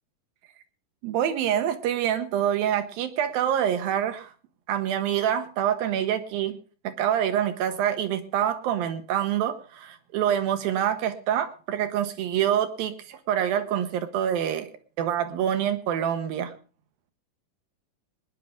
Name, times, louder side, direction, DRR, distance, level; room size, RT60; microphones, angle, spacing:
voice 1, 1.0-4.3 4.7-6.6 6.8-14.7 15.0-16.5, right 10 dB, 70° right, 9 dB, 2.5 m, -26 dB
20.5 x 10.0 x 3.6 m, 0.37 s
omnidirectional pair, 4.8 m